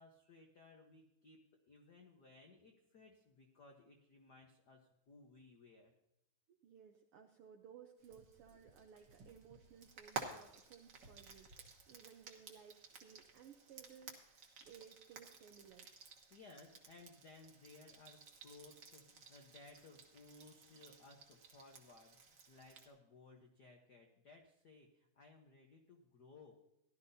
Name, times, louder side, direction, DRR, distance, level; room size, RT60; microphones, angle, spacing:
voice 1, 0.0-5.9 16.3-26.6, left 3 dB, 70° left, 2 dB, 0.9 m, -61 dB
voice 2, 6.5-15.9, right 8 dB, 75° right, 4 dB, 1.3 m, -60 dB
Frying (food), 8.0-22.9, right 4 dB, 50° right, 1.6 m, -54 dB
16.5 x 12.0 x 2.7 m, 0.86 s
omnidirectional pair, 3.4 m